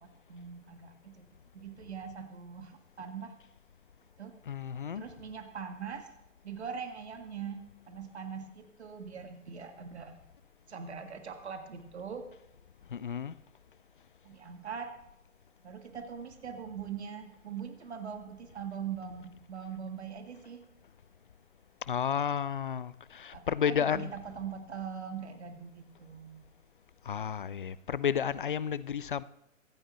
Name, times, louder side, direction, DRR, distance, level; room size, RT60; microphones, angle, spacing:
voice 1, 0.0-1.3 1.5-3.3 4.2-4.3 4.9-6.1 6.4-10.2 10.7-12.3 14.2-14.9 15.6-20.6 23.3-26.5, right 7 dB, 55° right, 1.9 m, -42 dB
voice 2, 4.5-5.1 12.9-13.3 21.9-24.1 27.1-29.2, left 8 dB, 40° left, 0.5 m, -32 dB
24.0 x 9.9 x 3.1 m
figure-of-eight pair, 130°, 40 cm